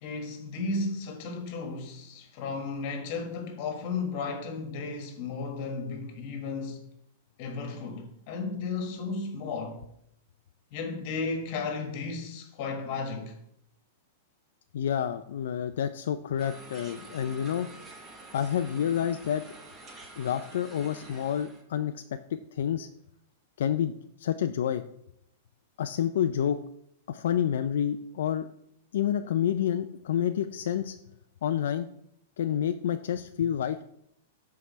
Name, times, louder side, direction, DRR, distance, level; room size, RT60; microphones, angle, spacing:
voice 1, 0.0-6.9 7.4-9.8 10.7-13.4, left 4 dB, 35° left, 1.5 m, -34 dB
voice 2, 14.7-17.7 18.3-19.4 20.2-22.0 22.3-22.9 23.6-23.9 24.2-24.8 25.8-26.6 27.1-28.5 28.9-31.0 31.4-31.9 32.4-33.8, left 9 dB, 65° left, 0.4 m, -28 dB
sound 1, 16.4-21.6, right 2 dB, 15° right, 0.8 m, -48 dB
12.5 x 4.7 x 3.2 m
supercardioid pair, 175°, 0 cm